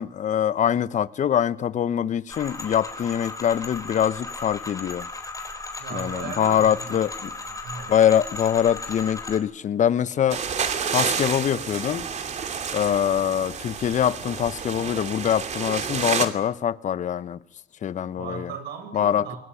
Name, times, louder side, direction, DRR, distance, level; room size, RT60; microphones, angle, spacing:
voice 1, 0.0-5.1 5.9-7.3 7.9-10.4 10.9-12.0 12.7-17.4 17.8-18.5 18.9-19.3, left 9 dB, 45° left, 1.1 m, -23 dB
sound 1, 2.3-9.4, left 3 dB, 20° left, 4.2 m, -36 dB
voice 2, 5.8-7.9 18.2-19.4, right 6 dB, 75° right, 7.1 m, -38 dB
sound 2, 10.3-16.3, right 6 dB, 45° right, 2.8 m, -29 dB
22.0 x 20.5 x 10.0 m
cardioid pair, 110°, 17 cm